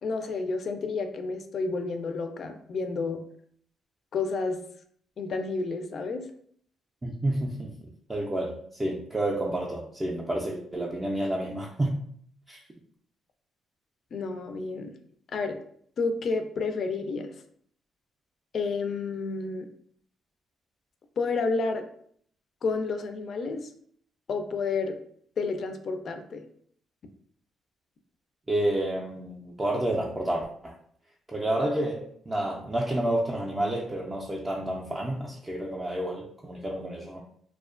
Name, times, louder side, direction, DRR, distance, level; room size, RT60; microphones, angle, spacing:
voice 1, 0.0-3.2 4.1-4.6 5.2-6.2 14.1-14.9 15.3-15.6 16.0-17.3 18.5-19.7 21.2-21.8 22.6-23.7 24.3-25.0 25.4-26.4, left 4 dB, 55° left, 7 dB, 0.3 m, -30 dB
voice 2, 7.0-7.7 8.1-12.0 12.5-12.6 28.5-30.7 31.3-37.2, right 1 dB, 20° right, -3 dB, 0.3 m, -30 dB
2.4 x 2.1 x 2.4 m, 0.63 s
cardioid pair, 90°, 0 cm